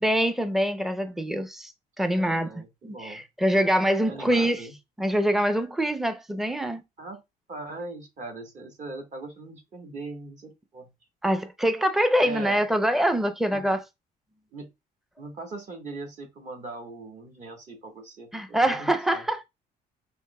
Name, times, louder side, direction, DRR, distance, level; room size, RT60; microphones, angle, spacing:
voice 1, 0.0-1.7 2.0-2.5 2.8-4.6 5.0-6.8 11.2-13.8 18.3-19.4, equal, ahead, 0.5 m, -24 dB
voice 2, 2.1-3.2 4.1-4.7 7.0-7.2 7.5-10.9 12.2-12.6 13.5-13.8 14.5-14.7 15.2-19.2, right 3 dB, 45° right, 1.5 m, -40 dB
6.3 x 2.9 x 2.2 m
cardioid pair, 110°, 17 cm